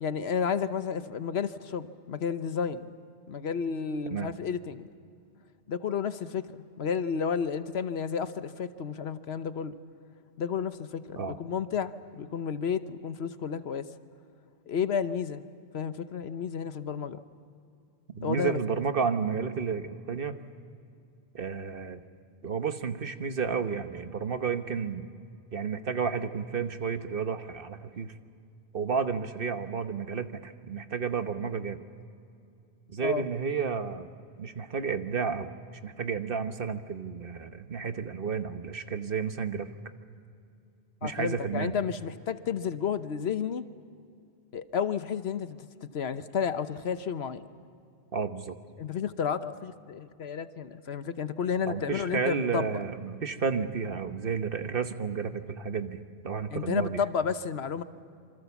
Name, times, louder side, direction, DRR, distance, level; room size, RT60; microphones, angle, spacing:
voice 1, 0.0-2.9 3.3-4.9 5.7-9.8 10.4-13.8 14.7-15.4 15.7-17.2 18.2-18.6 33.0-33.2 41.0-43.7 44.5-47.5 48.8-52.7 56.5-57.8, left 7 dB, 75° left, 12 dB, 1.2 m, -31 dB
voice 2, 18.1-20.4 21.3-22.0 22.4-25.1 25.5-28.1 28.7-31.8 32.9-34.1 34.4-35.5 35.8-39.8 41.0-41.8 48.1-48.5 51.7-57.0, right 6 dB, 60° right, 9 dB, 1.3 m, -31 dB
27.5 x 25.0 x 7.1 m, 2.5 s
omnidirectional pair, 1.1 m